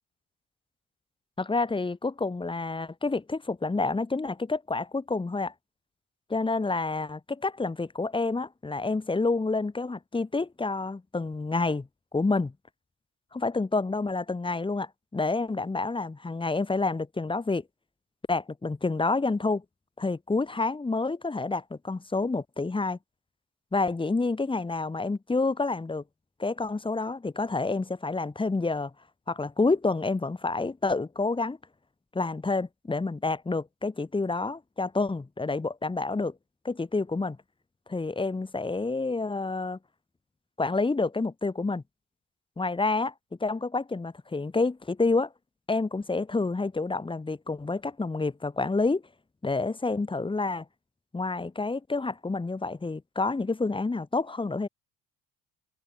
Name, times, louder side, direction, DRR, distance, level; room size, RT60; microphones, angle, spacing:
voice 1, 1.4-5.5 6.3-11.9 12.1-12.5 13.3-17.6 18.3-19.6 20.0-23.0 23.7-26.0 26.4-28.9 29.3-31.6 32.1-36.3 36.6-37.4 37.9-39.8 40.6-41.8 42.6-43.1 43.4-45.3 45.7-49.0 49.4-50.6 51.1-54.7, left 3 dB, 15° left, 2.1 m, -28 dB
cardioid pair, 115°, 34 cm